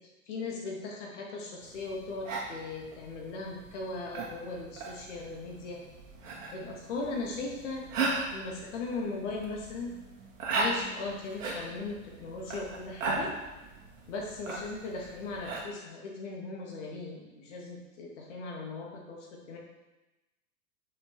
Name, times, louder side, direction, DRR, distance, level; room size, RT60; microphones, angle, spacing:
voice 1, 0.3-5.8 6.5-7.8 8.3-9.9 10.5-13.3 14.1-19.6, left 3 dB, 55° left, -1 dB, 2.2 m, -38 dB
sound 1, 1.6-15.6, right 3 dB, 60° right, 2.0 m, -38 dB
7.4 x 5.8 x 4.6 m, 1.1 s
figure-of-eight pair, 100°, 44 cm